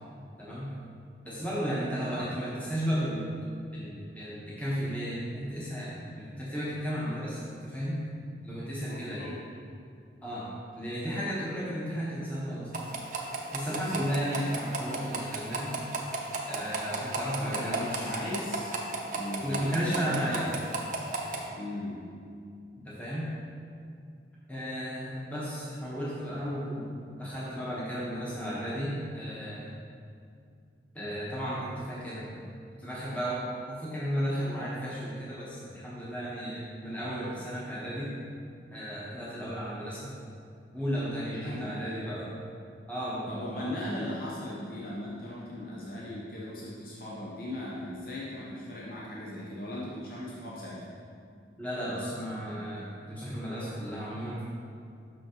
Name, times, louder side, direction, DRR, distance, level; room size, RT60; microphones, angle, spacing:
voice 1, 0.4-0.7 1.2-3.3 3.7-8.0 8.4-9.2 10.2-10.5 10.8-12.7 13.5-15.7 16.5-18.0 19.4-20.6 22.8-23.3 24.5-29.7 30.9-32.4 32.8-38.1 38.7-40.2 40.7-42.3 42.9-43.8 51.6-54.4, equal, 10° left, -9 dB, 1.1 m, -34 dB
voice 2, 8.8-9.4 13.7-14.1 17.4-20.2 21.6-22.0 41.3-41.9 43.3-51.0, left 1 dB, 55° left, -6 dB, 0.8 m, -38 dB
sound 1, 12.7-21.5, right 3 dB, 45° right, 0.6 m, -35 dB
6.1 x 5.9 x 3.0 m, 2.4 s
head